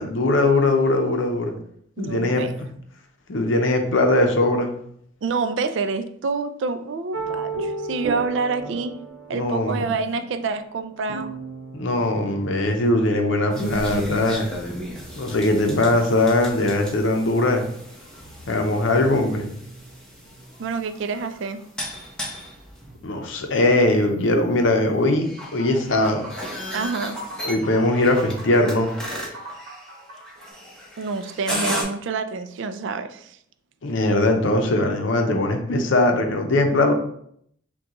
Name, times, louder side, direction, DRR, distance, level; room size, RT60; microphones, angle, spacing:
voice 1, 0.0-1.5 2.0-2.7 3.3-4.7 9.3-9.8 11.7-14.5 15.2-17.7 18.5-19.6 23.0-26.3 27.4-28.9 33.8-36.9, left 2 dB, 65° left, 4 dB, 0.6 m, -20 dB
voice 2, 2.0-2.6 5.2-8.9 9.3-11.3 20.6-21.6 26.7-27.2 31.0-33.4, right 4 dB, 60° right, 10 dB, 0.3 m, -27 dB
sound 1, 7.1-13.8, right 3 dB, 85° right, 0.7 m, -35 dB
sound 2, 13.5-31.8, equal, 5° left, 0.8 m, -35 dB
sound 3, 25.4-30.5, right 2 dB, 45° right, 1.2 m, -41 dB
6.1 x 2.3 x 2.9 m, 0.69 s
head